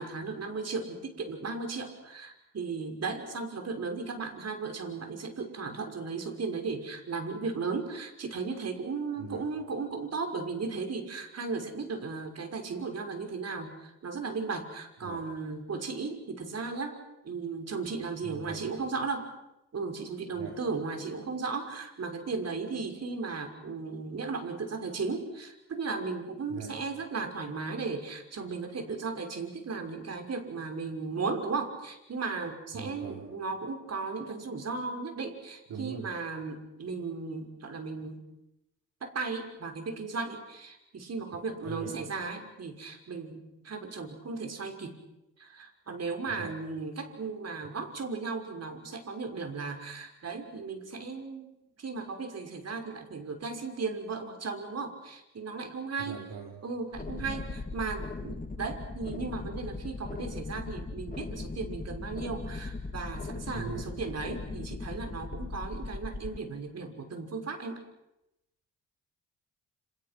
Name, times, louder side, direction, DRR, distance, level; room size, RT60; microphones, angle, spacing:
voice 1, 0.0-17.0 17.2-19.3 19.7-38.2 39.0-45.0 45.4-51.5 51.8-56.2 56.6-57.4 57.7-67.8, right 4 dB, 50° right, 5 dB, 6.1 m, -36 dB
voice 2, 9.2-9.5 15.0-15.2 18.2-18.7 20.3-20.6 26.5-26.8 32.7-33.3 35.7-36.1 41.6-41.9 46.3-46.6 56.0-56.6 57.2-57.4 63.5-63.9, right 6 dB, 65° right, 1 dB, 4.1 m, -41 dB
sound 1, 56.9-66.4, left 3 dB, 25° left, 1.8 m, -39 dB
29.5 x 29.0 x 6.2 m, 0.88 s
supercardioid pair, 70°, 34 cm